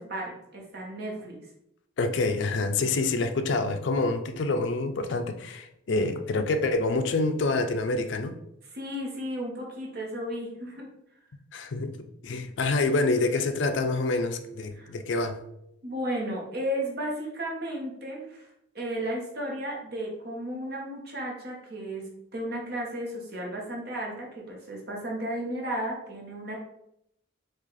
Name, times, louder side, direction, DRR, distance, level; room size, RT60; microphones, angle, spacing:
voice 1, 0.0-1.4 8.7-10.9 14.8-14.9 15.8-18.5 18.7-26.6, right 1 dB, 50° right, -2 dB, 1.2 m, -34 dB
voice 2, 2.0-8.4 11.5-15.4, left 3 dB, 60° left, 8 dB, 0.4 m, -27 dB
4.8 x 2.4 x 4.0 m, 0.80 s
head